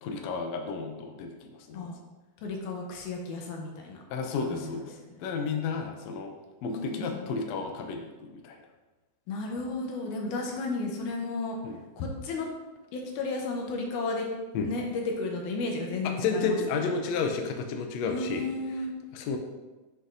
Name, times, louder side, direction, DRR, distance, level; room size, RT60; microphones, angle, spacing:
voice 1, 0.0-1.9 4.1-4.9 5.2-6.3 6.6-8.6 11.6-11.8 14.5-14.7 16.0-18.5 19.1-19.4, left 5 dB, 75° left, 4 dB, 1.7 m, -32 dB
voice 2, 2.4-4.0 4.5-5.2 6.7-7.3 9.3-11.6 12.0-12.5 12.9-14.3 14.6-16.9 18.1-18.9, left 3 dB, 90° left, 1 dB, 2.4 m, -33 dB
7.4 x 6.2 x 2.7 m, 1.1 s
omnidirectional pair, 3.5 m